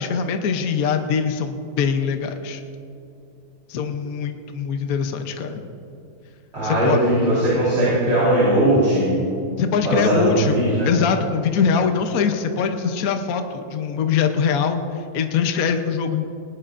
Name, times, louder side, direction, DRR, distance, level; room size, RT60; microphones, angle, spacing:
voice 1, 0.0-2.6 3.7-5.6 6.6-7.0 9.6-10.6 10.8-16.3, left 6 dB, 55° left, 6 dB, 1.2 m, -23 dB
voice 2, 6.5-9.1 9.8-10.9, right 1 dB, 75° right, -9 dB, 5.1 m, -19 dB
20.0 x 19.0 x 2.6 m, 2.7 s
omnidirectional pair, 2.1 m